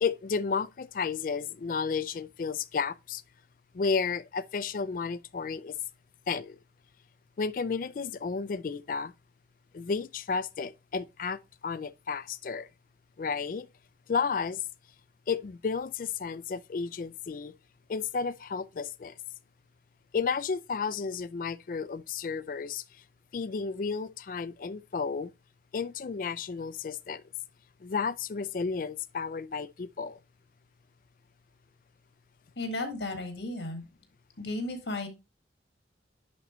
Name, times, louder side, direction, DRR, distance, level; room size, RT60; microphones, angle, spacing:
voice 1, 0.0-3.2 3.7-5.7 6.3-6.6 7.4-9.1 9.7-12.7 13.2-13.7 14.1-14.6 15.3-17.5 17.9-19.1 20.1-22.8 23.3-25.3 25.7-27.2 27.8-30.2, left 5 dB, 50° left, 0.4 m, -32 dB
voice 2, 32.6-33.8 34.4-35.1, left 2 dB, 75° left, 1.8 m, -34 dB
10.5 x 4.0 x 3.0 m
head